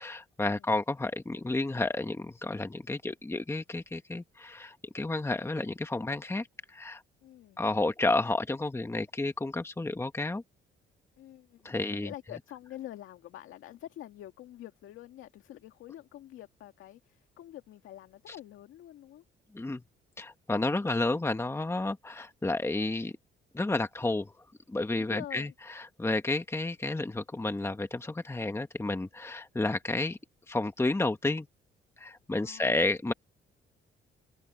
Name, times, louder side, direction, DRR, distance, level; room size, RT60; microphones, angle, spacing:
voice 1, 0.0-7.0 7.6-10.4 11.6-12.1 18.3-18.4 19.5-19.8 20.2-23.1 23.5-24.3 24.7-30.2 30.5-31.5 32.0-33.1, left 2 dB, 15° left, 1.4 m, -31 dB
voice 2, 7.2-7.6 11.2-19.2 20.7-20.9 25.0-25.5 32.4-32.9, left 13 dB, 85° left, 2.2 m, -47 dB
cardioid pair, 90°, 20 cm